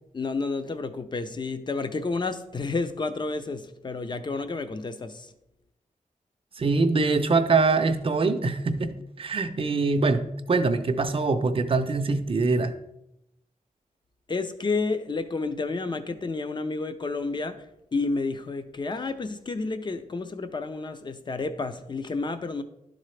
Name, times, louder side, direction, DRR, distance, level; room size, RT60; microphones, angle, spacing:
voice 1, 0.1-5.3 14.3-22.6, left 3 dB, 35° left, 10 dB, 0.5 m, -30 dB
voice 2, 6.6-8.9 9.2-10.2 10.5-12.7, right 3 dB, 40° right, 8 dB, 0.5 m, -23 dB
11.5 x 3.9 x 3.2 m, 0.83 s
wide cardioid pair, 160°, 14 cm